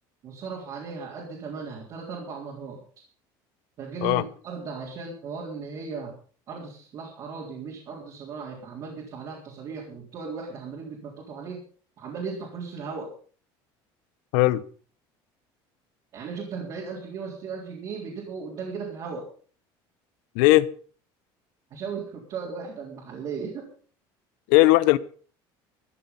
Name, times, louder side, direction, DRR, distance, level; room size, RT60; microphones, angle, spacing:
voice 1, 0.2-2.8 3.8-6.1 6.5-11.6 12.0-13.1 16.1-19.3 21.7-23.7, right 5 dB, 40° right, -2 dB, 3.8 m, -36 dB
voice 2, 20.3-20.7 24.5-25.0, left 18 dB, 85° left, 18 dB, 0.9 m, -18 dB
14.5 x 12.0 x 5.4 m, 0.43 s
cardioid pair, 165°, 10 cm